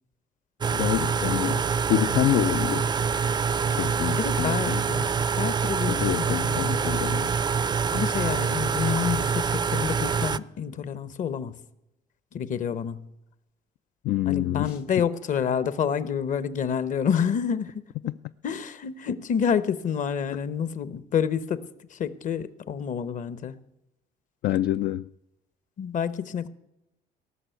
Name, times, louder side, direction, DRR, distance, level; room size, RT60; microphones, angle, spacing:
sound 1, 0.6-10.4, right 6 dB, 25° right, 0.4 m, -25 dB
voice 1, 0.7-3.0 3.7-4.8 5.9-7.3 14.0-14.8 18.1-18.2 24.4-25.1, left 14 dB, 65° left, 0.4 m, -27 dB
voice 2, 4.2-5.1 5.4-6.9 7.9-11.6 12.3-13.0 14.2-17.9 18.4-23.6 25.8-26.5, left 7 dB, 50° left, 0.9 m, -28 dB
18.0 x 6.3 x 9.2 m
cardioid pair, 110°, 17 cm